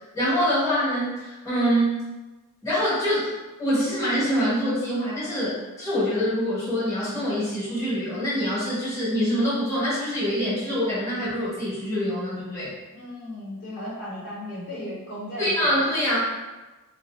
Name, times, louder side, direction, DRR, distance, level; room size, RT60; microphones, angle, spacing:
voice 1, 0.1-1.9 2.6-3.3 3.6-12.7 15.4-16.2, equal, 15° left, -10 dB, 1.3 m, -25 dB
voice 2, 12.9-15.5, left 1 dB, 50° left, -9 dB, 1.1 m, -35 dB
2.8 x 2.8 x 2.6 m, 1.1 s
head